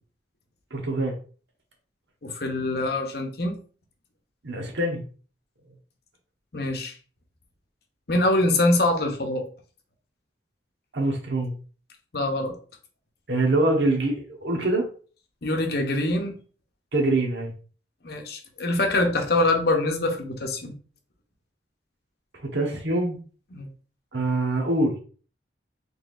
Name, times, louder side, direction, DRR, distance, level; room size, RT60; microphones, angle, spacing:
voice 1, 0.7-1.1 4.4-5.0 10.9-11.5 13.3-14.9 16.9-17.5 22.5-23.2 24.1-25.0, right 2 dB, 75° right, 1 dB, 1.1 m, -24 dB
voice 2, 2.2-3.5 6.5-6.9 8.1-9.5 12.1-12.5 15.4-16.3 18.0-20.7 23.5-23.7, left 2 dB, 60° left, 4 dB, 0.8 m, -24 dB
4.0 x 3.5 x 2.5 m, 0.40 s
head